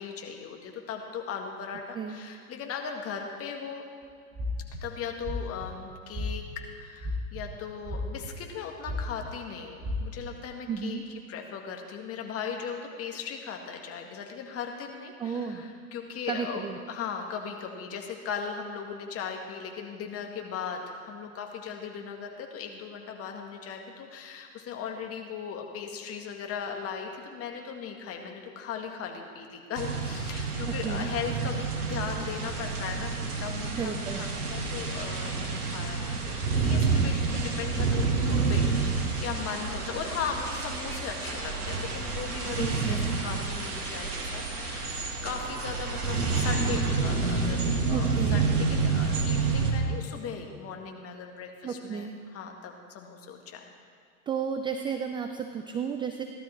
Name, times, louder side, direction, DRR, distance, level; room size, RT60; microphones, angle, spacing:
voice 1, 0.0-3.8 4.8-11.0 11.3-53.7, left 6 dB, 30° left, 2 dB, 2.0 m, -38 dB
sound 1, 4.3-4.8 5.2-5.6 6.1-6.6 7.0-7.4 7.9-8.5 8.8-9.3 9.8-10.0, left 1 dB, 35° right, 2.7 m, -33 dB
voice 2, 10.7-11.0 15.2-15.7 16.3-16.8 30.7-31.1 33.7-34.3 42.6-43.1 47.9-48.4 51.6-52.1 54.3-56.2, right 6 dB, 10° right, 6 dB, 0.4 m, -33 dB
sound 2, 29.8-49.7, right 4 dB, 80° right, 2.4 m, -29 dB
16.5 x 12.0 x 4.5 m, 2.2 s
figure-of-eight pair, 100°, 46 cm